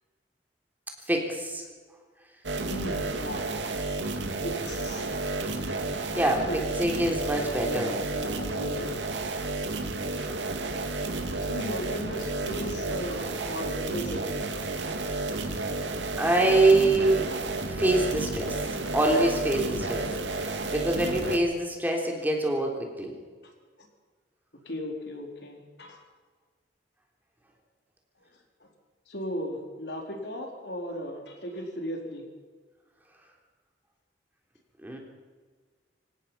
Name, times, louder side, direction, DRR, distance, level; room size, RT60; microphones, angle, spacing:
voice 1, 1.1-1.6 6.2-6.5 6.8-7.9 16.2-17.3 17.8-18.6 18.9-20.1 20.4-23.1 34.8-35.0, right 2 dB, 10° right, 0 dB, 3.6 m, -25 dB
sound 1, 2.4-21.4, right 2 dB, 85° right, 2.4 m, -31 dB
voice 2, 2.7-3.4 4.4-5.1 6.5-6.6 7.4-9.1 10.2-10.3 11.4-14.2 15.8-15.9 17.6-17.7 23.4-23.5 24.5-26.0 28.6-28.7 29.1-32.2, equal, 65° left, 2 dB, 4.2 m, -37 dB
26.5 x 17.0 x 5.8 m, 1.5 s
head